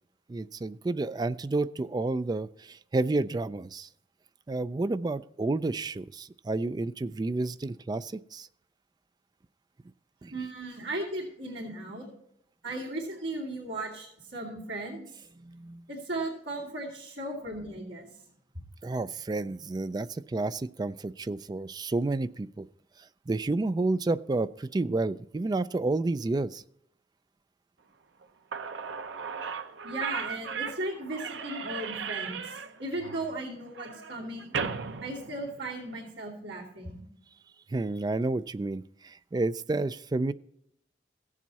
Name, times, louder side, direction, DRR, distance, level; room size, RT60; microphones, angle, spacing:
voice 1, 0.3-3.9 4.5-8.5 10.2-10.3 15.4-15.8 18.8-22.6 23.3-26.6 37.7-40.3, right 2 dB, 20° right, 14 dB, 0.3 m, -30 dB
voice 2, 10.3-12.1 12.6-15.0 15.9-18.1 29.8-34.5 35.0-37.0, right 2 dB, 65° right, -7 dB, 2.8 m, -36 dB
Slam / Squeak, 28.2-28.3 28.5-36.0, right 6 dB, 85° right, 0.8 m, -37 dB
16.0 x 7.5 x 4.1 m, 0.74 s
head